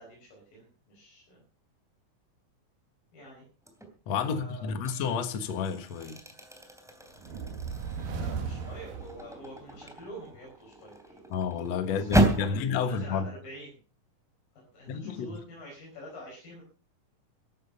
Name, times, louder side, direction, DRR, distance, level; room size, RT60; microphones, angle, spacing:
voice 1, 0.0-1.4 3.1-3.4 4.2-4.8 8.2-11.2 11.9-13.8 14.6-16.6, equal, 80° left, 6.7 m, -47 dB
sound 1, 3.6-4.0 4.5-12.6, right 1 dB, ahead, 2.5 m, -33 dB
voice 2, 4.1-6.2 11.3-13.3 14.9-15.4, left 6 dB, 55° left, 2.3 m, -30 dB
sound 2, 7.1-9.9, right 5 dB, 85° right, 3.5 m, -36 dB
14.5 x 12.0 x 5.4 m
omnidirectional pair, 4.0 m